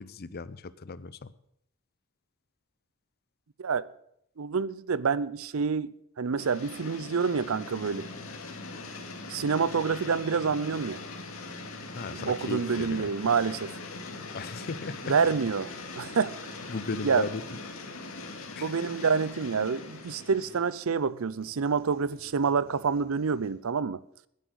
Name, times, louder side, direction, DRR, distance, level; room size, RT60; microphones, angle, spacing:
voice 1, 0.0-1.3 11.9-13.1 14.3-15.2 16.0-16.1 16.7-17.6 18.6-18.8, left 4 dB, 50° left, 0.6 m, -37 dB
voice 2, 4.4-8.1 9.3-11.0 12.1-13.7 15.1-16.4 17.0-17.3 18.6-24.0, right 5 dB, 75° right, 0.6 m, -27 dB
sound 1, 6.4-20.9, left 3 dB, 90° left, 2.2 m, -41 dB
sound 2, 7.5-23.5, equal, 45° right, 3.7 m, -54 dB
10.5 x 10.0 x 8.0 m
head